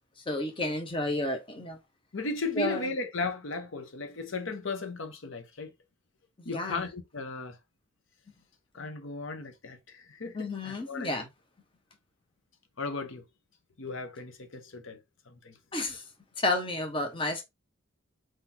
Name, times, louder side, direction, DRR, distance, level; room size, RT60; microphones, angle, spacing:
voice 1, 0.3-1.8 2.5-2.9 6.4-6.9 10.3-11.3 15.7-16.0 16.4-17.4, left 2 dB, 25° left, 1.1 m, -31 dB
voice 2, 2.1-5.7 6.4-7.6 8.7-11.1 12.8-13.2 13.8-15.0 15.3-15.5, left 3 dB, 75° left, 0.9 m, -36 dB
4.6 x 4.0 x 2.8 m
head